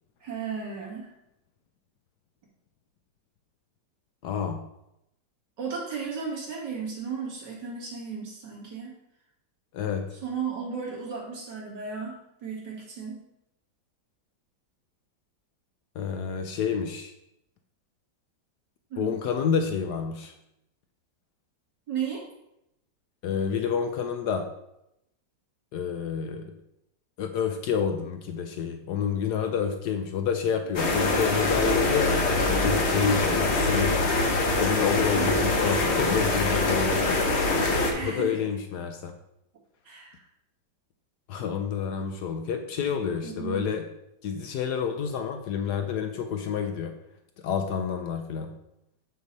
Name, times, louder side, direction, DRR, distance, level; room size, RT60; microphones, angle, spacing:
voice 1, 0.2-1.1 5.6-9.0 10.1-13.2 18.9-19.2 21.9-22.2 31.0-31.2 33.1-33.4 35.1-35.4 37.9-38.4 39.8-40.2 43.2-43.7, right 6 dB, 65° right, -4 dB, 2.7 m, -35 dB
voice 2, 4.2-4.6 9.7-10.1 16.0-17.1 19.0-20.3 23.2-24.5 25.7-26.5 27.2-34.1 34.5-37.2 38.0-39.1 41.3-43.9 44.2-46.9 47.4-48.6, left 7 dB, 70° left, 6 dB, 1.1 m, -29 dB
sound 1, 30.7-37.9, left 2 dB, 45° left, 1.1 m, -24 dB
6.8 x 6.2 x 4.0 m, 0.83 s
omnidirectional pair, 2.0 m